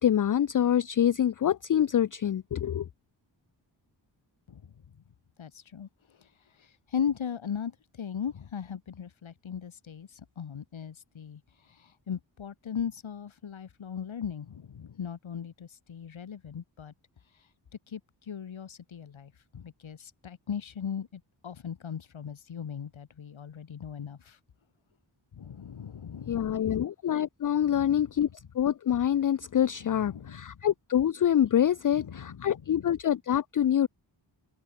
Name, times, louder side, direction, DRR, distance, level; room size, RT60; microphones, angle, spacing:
voice 1, 0.0-2.9 26.3-28.3 28.5-33.9, left 10 dB, 45° left, 0.5 m, -26 dB
voice 2, 5.4-5.9 6.2-6.3 6.6-11.4 11.7-16.9 17.9-18.0 18.3-24.4 25.3-26.4 27.6-28.2 29.9-30.5 31.9-32.9, left 7 dB, 90° left, 5.0 m, -38 dB
open air
wide cardioid pair, 175°, 46 cm